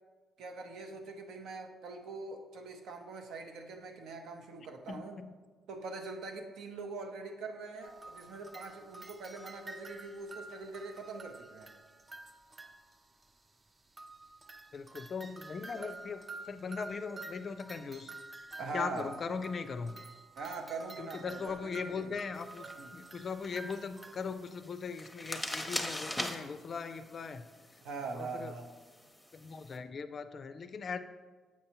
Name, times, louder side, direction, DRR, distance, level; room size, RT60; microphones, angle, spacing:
voice 1, 0.4-5.2 5.7-11.7 18.6-19.1 20.4-22.1 22.8-22.9 27.8-28.7, right 3 dB, 80° right, 4 dB, 0.7 m, -43 dB
voice 2, 4.9-5.3 14.7-18.1 18.7-19.9 21.0-27.5 28.1-28.5 29.3-31.0, left 5 dB, 45° left, 11 dB, 0.4 m, -39 dB
sound 1, 7.8-13.2 14.0-24.5, right 2 dB, 25° right, 0.4 m, -49 dB
sound 2, 22.3-29.8, left 1 dB, 5° left, 0.7 m, -43 dB
7.2 x 5.4 x 2.9 m, 1.4 s
cardioid pair, 90°, 0 cm